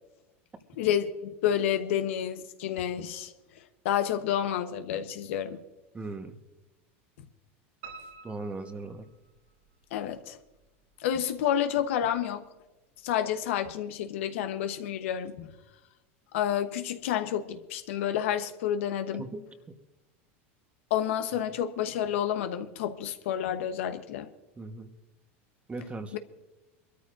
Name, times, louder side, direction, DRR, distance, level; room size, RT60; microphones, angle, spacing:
voice 1, 0.8-3.3 3.8-5.6 9.9-10.4 11.0-12.4 13.0-15.5 16.3-19.3 20.9-24.3 26.1-26.2, left 10 dB, 80° left, 8 dB, 1.0 m, -29 dB
voice 2, 5.9-6.4 8.2-9.1 19.2-19.7 24.6-24.9 25.7-26.2, right 3 dB, 15° right, 7 dB, 1.3 m, -39 dB
Piano, 7.8-9.7 10.2-11.0 11.4-11.5 11.9-12.0 12.3-12.4, right 4 dB, 80° right, 3.2 m, -49 dB
23.5 x 13.5 x 2.6 m, 1.1 s
supercardioid pair, 115°, 7 cm